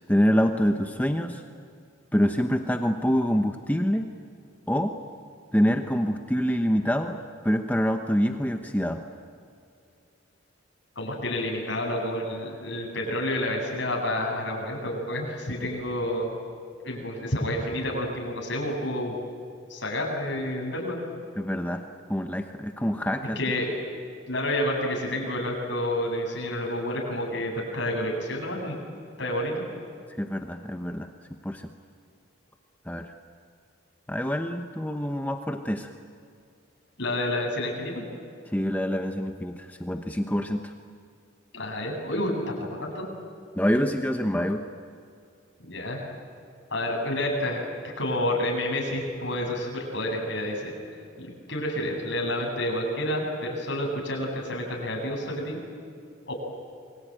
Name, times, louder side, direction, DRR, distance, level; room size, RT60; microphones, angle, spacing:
voice 1, 0.1-1.4 2.1-4.1 4.7-4.9 5.5-7.2 7.4-9.0 16.9-17.0 21.4-23.4 30.2-31.1 31.4-31.7 32.9-33.1 34.1-35.9 38.5-40.7 43.6-44.6, equal, 10° left, 5 dB, 1.0 m, -26 dB
voice 2, 11.0-16.3 16.8-19.2 19.7-21.0 23.4-23.7 24.3-28.7 29.2-29.6 37.0-38.0 41.5-43.1 45.6-46.0 46.7-50.7 51.2-55.6 56.3-56.4, left 1 dB, 65° left, 0 dB, 7.7 m, -29 dB
28.5 x 23.0 x 9.0 m, 2.4 s
head